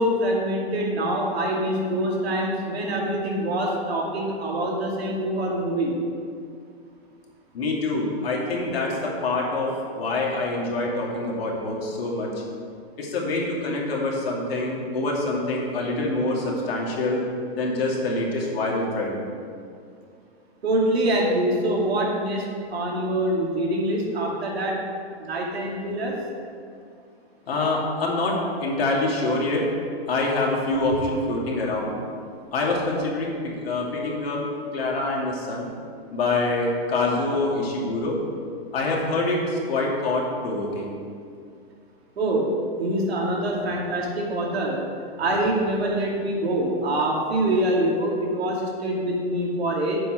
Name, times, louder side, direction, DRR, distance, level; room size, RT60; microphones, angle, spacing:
voice 1, 0.0-5.9 20.6-24.7 25.2-26.2 42.2-42.5 42.8-44.8 45.2-50.0, right 1 dB, 90° right, -2 dB, 2.5 m, -25 dB
voice 2, 7.5-12.3 13.0-17.3 17.5-19.2 27.5-29.7 30.1-31.9 32.5-34.4 34.7-35.6 36.1-38.2 38.7-40.9, left 2 dB, 70° left, -2 dB, 2.6 m, -25 dB
7.7 x 5.8 x 7.5 m, 2.3 s
hypercardioid pair, 165°, 31 cm